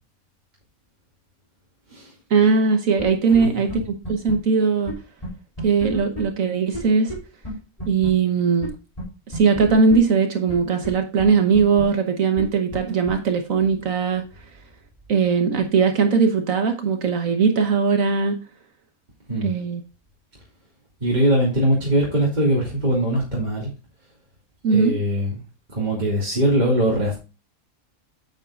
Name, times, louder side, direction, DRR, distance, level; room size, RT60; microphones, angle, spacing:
voice 1, 2.3-4.9 5.6-7.1 7.9-8.7 9.3-14.2 15.1-18.4 19.4-19.8 24.6-25.0, right 5 dB, 65° right, 6 dB, 1.4 m, -19 dB
sound 1, 3.0-3.1 3.3-3.4 3.7-3.8 4.0-4.3 4.9-5.0 5.2-5.3 5.6-6.2 6.7-6.8 7.1-7.2 7.4-7.5 7.8-8.1 8.6-8.7 9.0-9.1 9.3-10.0 10.5-10.6 10.8-10.9 11.2-11.3 11.5-11.8 12.4-12.5 12.7-12.8 13.1-13.2, equal, 25° left, 3.5 m, -30 dB
voice 2, 3.3-3.6 19.3-19.5 21.0-23.7 24.6-25.4 25.7-27.1, right 1 dB, 30° right, -4 dB, 2.7 m, -21 dB
9.1 x 8.1 x 2.4 m, 0.30 s
omnidirectional pair, 1.5 m